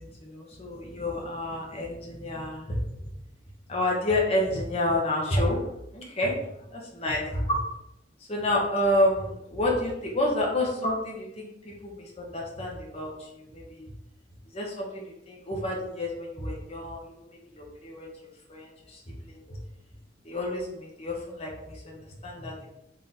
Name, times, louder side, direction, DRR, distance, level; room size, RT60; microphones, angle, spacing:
voice 1, 0.0-2.8 3.7-5.6 5.9-6.4 6.7-7.6 8.3-11.5 12.0-13.9 14.5-17.1 17.5-18.1 18.5-19.0 19.3-19.6 20.2-22.7, left 1 dB, 35° left, -2 dB, 0.9 m, -29 dB
3.6 x 2.7 x 4.1 m, 0.81 s
head